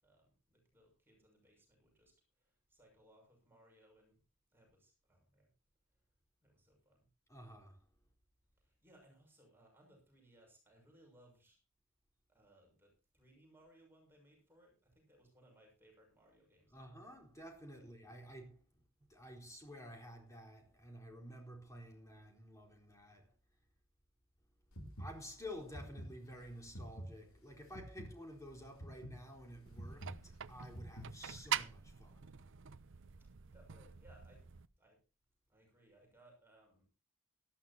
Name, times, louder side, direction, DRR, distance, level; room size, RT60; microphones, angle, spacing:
voice 1, 0.0-4.2 4.5-5.5 6.4-7.1 8.6-11.6 12.3-17.1 17.7-17.9 33.5-34.5 34.8-35.0 35.5-36.9, right 1 dB, 10° right, 6.4 m, -66 dB
voice 2, 7.3-7.8 16.7-18.5 19.1-23.2 25.0-32.3, equal, 15° left, 4.1 m, -52 dB
sound 1, 24.7-31.5, right 1 dB, 80° left, 3.4 m, -49 dB
sound 2, 29.7-34.7, right 9 dB, 65° right, 0.7 m, -44 dB
18.5 x 13.5 x 2.8 m
head